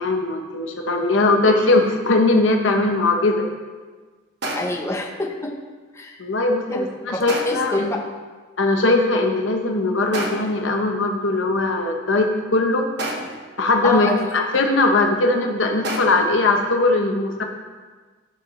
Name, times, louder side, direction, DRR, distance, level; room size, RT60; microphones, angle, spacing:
voice 1, 0.0-3.5 6.2-7.9 8.6-12.9 13.6-17.4, left 2 dB, 75° left, 3 dB, 0.9 m, -20 dB
sound 1, 1.7-2.1 4.4-5.0 7.3-7.8 10.1-10.7 13.0-13.6 15.8-16.4, right 1 dB, 60° right, 1.1 m, -30 dB
voice 2, 4.5-5.5 5.9-6.2 6.7-8.0 13.8-14.2, left 1 dB, 15° left, 2 dB, 0.7 m, -27 dB
11.5 x 6.6 x 3.2 m, 1.4 s
head